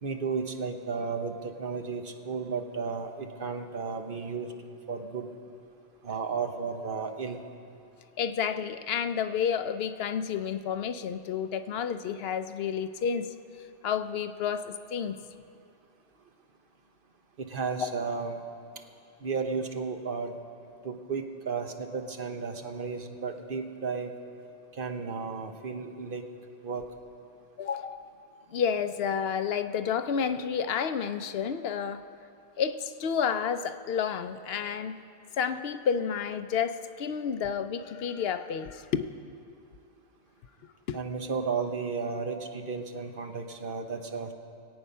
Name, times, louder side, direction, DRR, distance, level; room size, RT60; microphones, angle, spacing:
voice 1, 0.0-4.5 4.9-5.3 6.0-7.4 17.4-18.4 19.2-20.3 20.8-24.1 24.8-26.2 26.6-26.8 40.9-44.3, right 5 dB, 55° right, 5 dB, 1.1 m, -33 dB
voice 2, 8.2-13.3 13.8-15.2 17.8-17.9 27.6-28.1 28.5-32.0 32.6-35.0 35.4-39.1 40.9-41.0, left 7 dB, 70° left, 10 dB, 0.8 m, -30 dB
21.0 x 8.7 x 5.5 m, 2.5 s
omnidirectional pair, 1.1 m